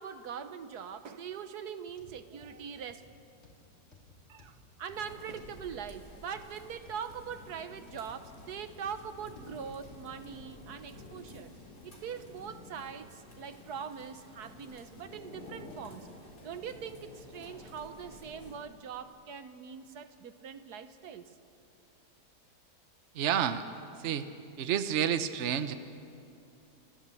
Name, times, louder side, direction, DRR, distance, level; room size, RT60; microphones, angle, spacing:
voice 1, 0.0-3.0 4.3-11.5 11.8-16.2 16.4-21.3, right 7 dB, 70° right, 10 dB, 1.4 m, -42 dB
sound 1, 1.9-11.0 11.5-11.7 12.3-12.4, left 1 dB, 40° left, 3.6 m, -58 dB
sound 2, 4.9-18.6, left 2 dB, 70° left, 4.2 m, -51 dB
voice 2, 23.1-23.6 24.0-24.3 24.6-25.7, right 9 dB, 50° right, 10 dB, 1.0 m, -29 dB
28.5 x 15.0 x 8.4 m, 2.5 s
omnidirectional pair, 1.8 m